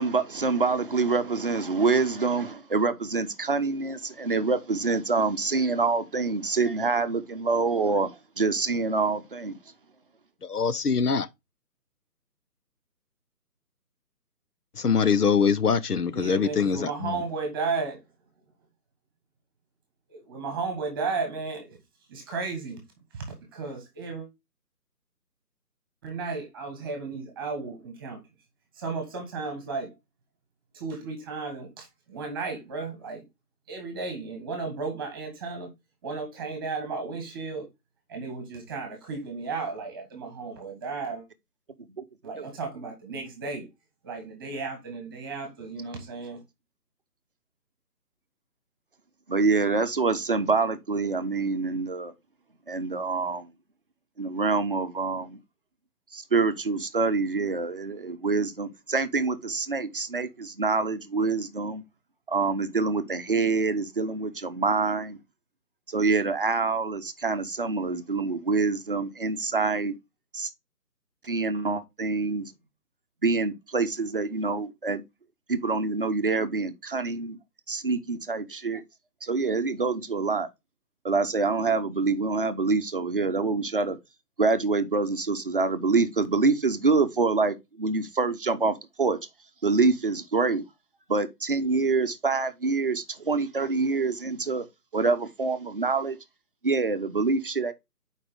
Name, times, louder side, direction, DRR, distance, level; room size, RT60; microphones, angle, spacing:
voice 1, 0.0-9.6 42.0-42.1 42.4-42.5 49.3-52.1 52.7-53.5 54.2-55.4 56.1-61.8 62.3-65.2 65.9-70.0 70.3-70.5 71.2-72.5 73.2-75.0 75.5-77.4 77.7-78.8 79.2-80.5 81.0-84.0 84.4-89.2 89.6-90.6 91.1-94.6 94.9-96.2 96.6-97.7, right 4 dB, 35° right, 0.7 m, -26 dB
voice 2, 10.4-11.3 14.8-17.2, left 6 dB, 70° left, 0.9 m, -23 dB
voice 3, 16.1-18.0 20.1-21.8 22.1-22.8 23.1-24.3 26.0-28.2 28.7-29.9 30.7-33.2 33.7-35.7 36.0-37.7 38.1-41.2 42.2-43.7 44.0-46.4, right 4 dB, 15° right, 1.5 m, -34 dB
7.6 x 5.0 x 3.6 m
figure-of-eight pair, 155°, 47 cm